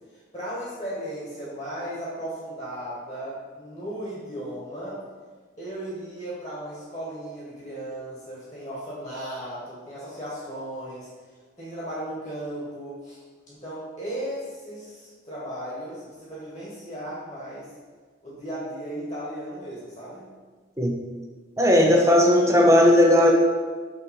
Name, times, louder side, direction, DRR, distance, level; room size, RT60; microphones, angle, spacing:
voice 1, 0.3-5.0 5.6-11.1 11.6-13.2 13.5-17.7 18.2-20.2 21.9-22.1, right 1 dB, 20° left, -7 dB, 1.5 m, -36 dB
voice 2, 21.6-23.3, left 1 dB, 15° right, 0 dB, 0.7 m, -17 dB
5.8 x 3.1 x 5.2 m, 1.4 s
head